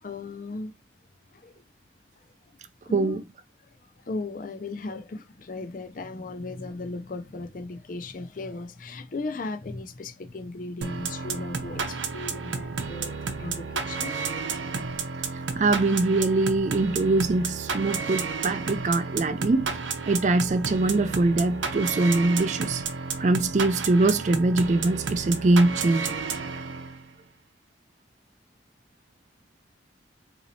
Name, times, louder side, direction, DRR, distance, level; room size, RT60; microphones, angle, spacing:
voice 1, 0.0-0.7 1.3-1.6 2.8-3.2 3.8-14.9, left 3 dB, 45° left, 0.5 m, -37 dB
voice 2, 2.9-3.2 15.5-19.7 20.1-22.8 23.2-26.2, right 2 dB, 40° right, 0.4 m, -23 dB
sound 1, 10.8-27.1, right 5 dB, 85° right, 0.7 m, -32 dB
4.0 x 2.8 x 2.7 m
head